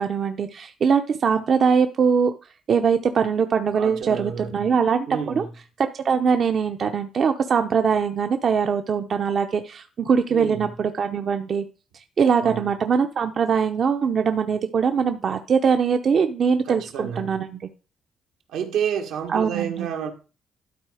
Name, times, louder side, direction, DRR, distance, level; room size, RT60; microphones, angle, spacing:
voice 1, 0.0-2.3 2.7-5.4 5.9-11.6 12.2-17.6 19.3-19.9, right 6 dB, 50° right, 0.7 m, -22 dB
voice 2, 3.7-4.7 5.1-5.5 10.3-10.7 12.4-12.7 16.6-17.4 18.5-20.1, right 8 dB, 85° right, 1.6 m, -30 dB
12.0 x 4.1 x 4.9 m
cardioid pair, 90°, 0 cm